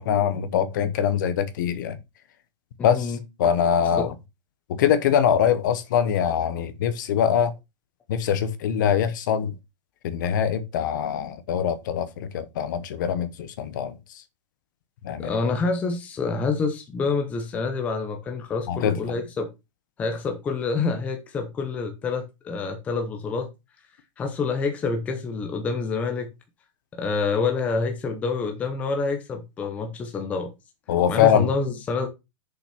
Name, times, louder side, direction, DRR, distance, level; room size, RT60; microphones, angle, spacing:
voice 1, 0.0-2.0 2.8-3.1 3.4-4.1 4.8-7.5 8.1-9.5 10.0-13.9 15.0-15.3 18.7-19.0 30.9-31.5, left 8 dB, 40° left, 1.0 m, -23 dB
voice 2, 2.8-3.2 4.0-4.1 15.2-19.5 20.0-23.5 24.2-26.3 26.9-30.5 31.1-32.1, left 4 dB, 10° left, 0.7 m, -27 dB
6.9 x 5.6 x 5.9 m
supercardioid pair, 180°, 16 cm